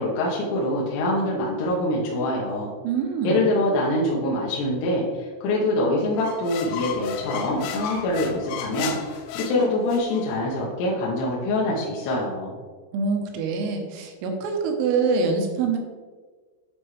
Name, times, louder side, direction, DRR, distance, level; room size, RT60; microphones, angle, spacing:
voice 1, 0.0-2.7 3.2-12.5, left 1 dB, 70° left, -5 dB, 2.7 m, -24 dB
voice 2, 2.8-3.5 12.9-15.8, right 4 dB, 80° right, 3 dB, 3.3 m, -25 dB
sound 1, 6.2-10.2, left 8 dB, 90° left, 3.3 m, -34 dB
11.0 x 4.4 x 3.2 m, 1.4 s
omnidirectional pair, 5.8 m